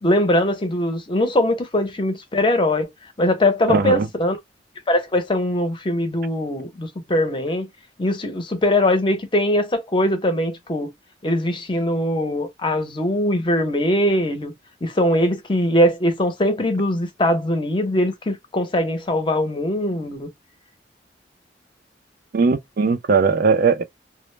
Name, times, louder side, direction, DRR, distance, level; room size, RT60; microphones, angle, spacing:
voice 1, 0.0-2.9 3.2-4.4 4.9-7.7 8.0-10.9 11.2-14.5 14.8-20.3, left 1 dB, 30° left, 0.7 m, -21 dB
voice 2, 3.7-4.1 22.3-23.8, right 5 dB, 55° right, 0.4 m, -18 dB
2.0 x 2.0 x 3.1 m
head